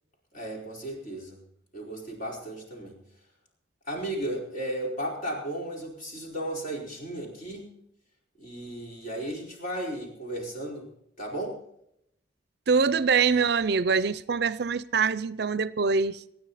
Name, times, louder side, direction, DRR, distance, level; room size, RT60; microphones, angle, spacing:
voice 1, 0.3-1.4 1.7-3.0 3.9-7.7 8.4-10.9 11.2-11.5, right 1 dB, 45° left, 4.6 m, -35 dB
voice 2, 12.7-16.2, right 5 dB, 60° right, 0.5 m, -24 dB
26.5 x 9.7 x 4.2 m
head